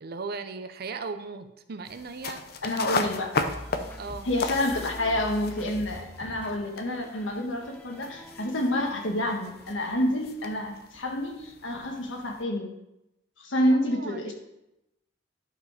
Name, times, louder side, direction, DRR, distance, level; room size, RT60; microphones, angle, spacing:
voice 1, 0.0-2.4 4.0-4.3 13.7-14.3, right 4 dB, 55° right, 9 dB, 0.6 m, -37 dB
sound 1, 1.9-12.4, left 3 dB, 55° left, 0.7 m, -36 dB
voice 2, 2.6-3.4 4.2-12.7 13.4-14.3, left 1 dB, 85° left, 2 dB, 1.6 m, -28 dB
sound 2, 3.0-9.9, left 1 dB, 10° left, 0.6 m, -45 dB
11.0 x 5.1 x 4.9 m, 0.89 s
head